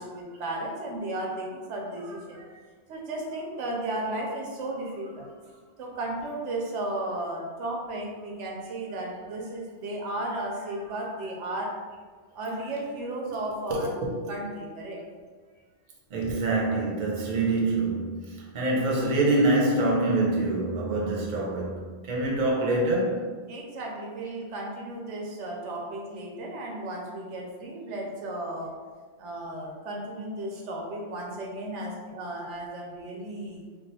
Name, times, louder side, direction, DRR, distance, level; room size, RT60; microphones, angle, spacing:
voice 1, 0.0-2.6 2.9-5.3 5.8-11.8 12.3-15.0 16.2-16.4 23.5-28.7 29.2-33.7, right 1 dB, 80° right, -1 dB, 1.0 m, -34 dB
voice 2, 16.1-23.3, right 2 dB, 45° right, -3 dB, 0.6 m, -25 dB
2.3 x 2.3 x 4.0 m, 1.5 s
omnidirectional pair, 1.2 m